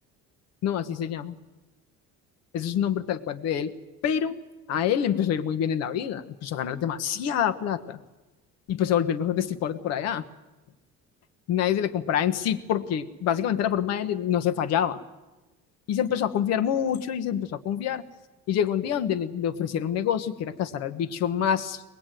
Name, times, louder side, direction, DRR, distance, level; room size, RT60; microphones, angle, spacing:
voice 1, 0.6-1.3 2.5-3.7 4.0-4.4 4.7-8.0 8.7-10.2 11.5-15.0 15.9-18.0 18.5-21.8, left 9 dB, 60° left, 10 dB, 1.4 m, -26 dB
22.5 x 20.5 x 9.2 m, 1.1 s
cardioid pair, 180°, 29 cm